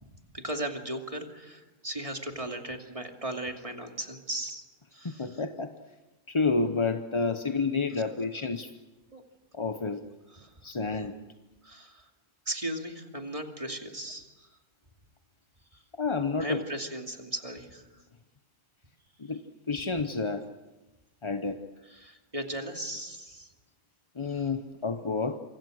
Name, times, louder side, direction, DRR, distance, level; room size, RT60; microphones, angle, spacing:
voice 1, 0.0-4.7 4.9-5.4 8.0-8.1 9.1-9.2 10.3-10.6 10.9-11.0 11.6-12.1 12.5-14.5 15.7-15.8 16.4-17.9 21.8-23.5 24.2-24.5, right 1 dB, 25° right, 3 dB, 2.6 m, -37 dB
voice 2, 5.0-5.7 6.3-8.7 9.5-10.0 10.6-11.2 16.0-16.6 19.2-19.4 19.7-20.5 21.2-21.6 24.2-25.4, left 4 dB, 25° left, 7 dB, 0.7 m, -29 dB
27.0 x 25.5 x 6.4 m, 1.1 s
omnidirectional pair, 1.5 m